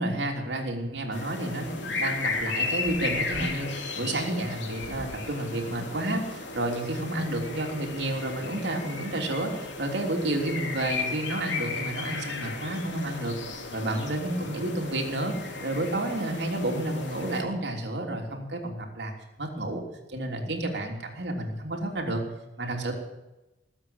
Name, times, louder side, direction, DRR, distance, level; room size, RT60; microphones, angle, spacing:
voice 1, 0.0-13.4 13.7-15.3 15.6-19.1 19.4-19.8 20.1-22.2 22.6-22.9, right 1 dB, 70° right, 1 dB, 3.3 m, -30 dB
sound 1, 1.1-17.4, left 4 dB, 85° left, 2.9 m, -35 dB
19.5 x 8.2 x 8.8 m, 0.99 s
head